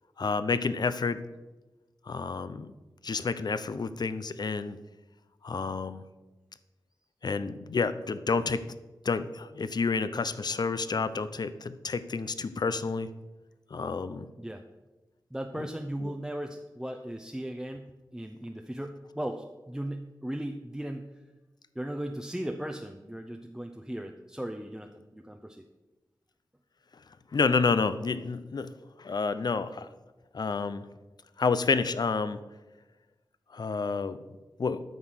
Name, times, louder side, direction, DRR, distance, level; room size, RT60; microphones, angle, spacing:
voice 1, 0.2-1.2 2.1-2.7 3.0-4.8 5.4-6.0 7.2-8.6 9.0-13.1 13.7-14.3 15.6-15.7 16.0-16.1 27.3-28.7 29.0-29.9 30.3-30.8 31.4-32.4 33.5-34.2 34.6-34.8, left 4 dB, 60° left, 13 dB, 0.6 m, -29 dB
voice 2, 15.3-21.1 21.8-25.6, right 1 dB, 5° right, 4 dB, 0.6 m, -37 dB
9.2 x 6.0 x 6.4 m, 1.1 s
wide cardioid pair, 65°, 8 cm